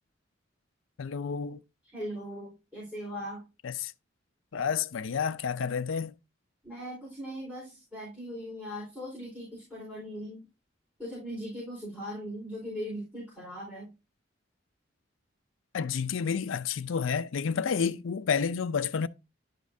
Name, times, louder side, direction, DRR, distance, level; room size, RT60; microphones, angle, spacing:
voice 1, 1.0-1.6 3.6-3.9 4.5-6.2 15.7-19.1, left 6 dB, 90° left, 0.5 m, -30 dB
voice 2, 1.8-3.4 6.6-10.5 11.0-13.9, equal, 5° right, 4.2 m, -39 dB
11.0 x 5.2 x 2.6 m
head